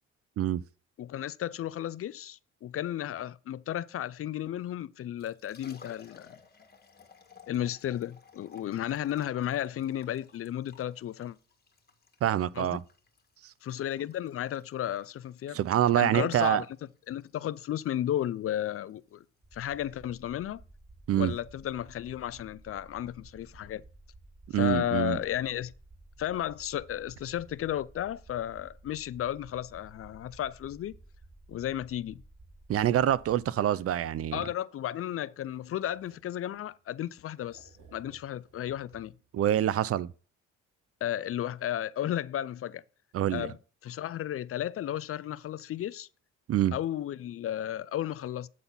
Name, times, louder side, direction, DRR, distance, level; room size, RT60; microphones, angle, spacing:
voice 1, 1.0-6.3 7.5-11.4 12.6-12.8 13.6-15.6 16.0-16.7 17.1-19.2 19.5-20.6 21.1-23.8 24.5-25.7 26.2-31.0 31.5-32.2 34.3-39.1 41.0-42.8 43.3-43.5 43.8-46.1 46.7-48.5, left 11 dB, 50° left, 0.4 m, -33 dB
Liquid, 5.2-22.4, left 5 dB, 30° left, 1.6 m, -58 dB
voice 2, 12.2-12.8 13.4-13.5 15.5-16.6 21.1-21.3 24.5-25.2 32.7-34.5 39.3-40.1 43.1-43.5 46.5-46.7, right 11 dB, 50° right, 0.4 m, -26 dB
sound 1, 19.4-33.4, right 2 dB, 25° right, 4.2 m, -54 dB
sound 2, 33.2-34.5 35.3-36.8 37.3-39.3, right 4 dB, 85° right, 2.7 m, -60 dB
8.5 x 4.0 x 5.5 m
cardioid pair, 90°, 30 cm